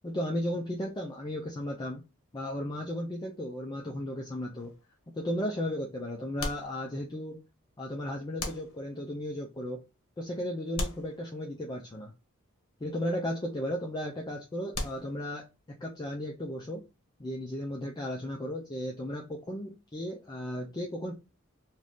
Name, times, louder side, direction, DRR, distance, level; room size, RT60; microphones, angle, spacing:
voice 1, 0.0-2.0 2.3-4.7 5.1-7.4 7.8-9.8 10.2-12.1 12.8-16.8 17.2-21.1, left 1 dB, 20° left, 0.4 m, -35 dB
sound 1, 4.6-5.1 6.4-7.3 8.4-9.2 10.7-11.8 14.7-15.6, left 2 dB, 75° left, 0.8 m, -39 dB
2.7 x 2.4 x 3.3 m
head